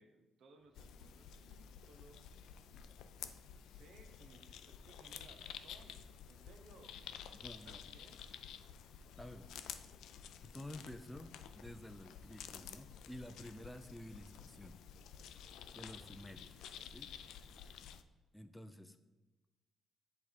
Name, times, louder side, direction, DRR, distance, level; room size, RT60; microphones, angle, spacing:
voice 1, 0.0-2.2 2.8-2.9 3.5-7.0 7.4-8.2, right 3 dB, 70° right, 5 dB, 0.8 m, -63 dB
sound 1, 0.6-17.8, left 3 dB, 40° left, 0.7 m, -74 dB
sound 2, 0.8-18.0, left 8 dB, 80° left, 0.3 m, -52 dB
voice 2, 7.3-7.8 9.2-9.5 10.4-14.8 15.2-15.3 15.7-16.5 16.9-17.1 18.3-19.0, left 1 dB, 5° left, 9 dB, 0.4 m, -51 dB
7.9 x 3.5 x 4.3 m, 1.2 s
cardioid pair, 90°, 0 cm